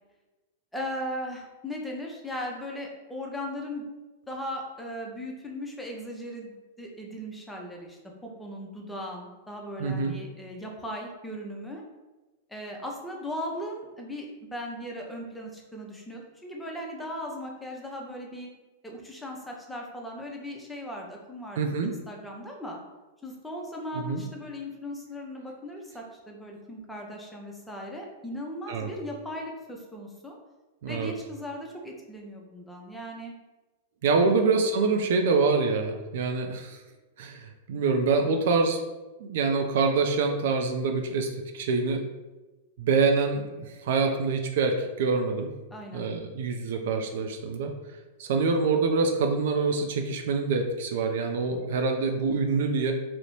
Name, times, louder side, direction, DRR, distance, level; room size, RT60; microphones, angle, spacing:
voice 1, 0.7-3.8 4.3-11.8 12.5-18.5 18.8-22.8 23.2-30.4 30.9-33.3 34.3-34.4 45.7-46.0, equal, 5° left, 0 dB, 0.5 m, -38 dB
voice 2, 9.8-10.1 21.6-21.9 23.9-24.2 28.7-28.9 30.8-31.1 34.0-36.8 37.2-38.8 39.2-42.0 42.8-45.5 45.9-47.7 48.2-52.9, right 4 dB, 65° right, 4 dB, 0.3 m, -25 dB
2.5 x 2.0 x 3.0 m, 1.1 s
hypercardioid pair, 105°, 0 cm